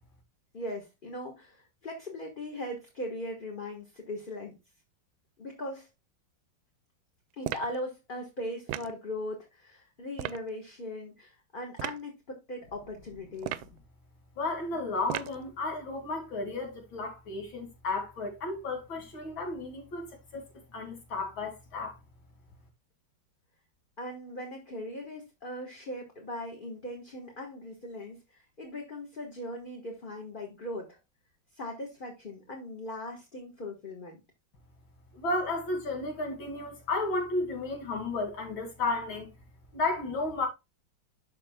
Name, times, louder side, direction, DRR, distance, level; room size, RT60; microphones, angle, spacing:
voice 1, 0.5-4.6 5.4-5.9 7.4-13.6 24.0-31.0 31.5-34.2, left 1 dB, 30° left, 1.3 m, -39 dB
sound 1, 7.4-7.8 8.7-9.0 10.2-10.4 11.8-12.0 13.4-13.8 15.1-15.4, right 13 dB, 80° right, 1.3 m, -35 dB
voice 2, 14.4-21.9 35.1-39.3 39.7-40.5, left 2 dB, 75° left, 3.0 m, -33 dB
12.5 x 4.7 x 2.2 m
omnidirectional pair, 2.2 m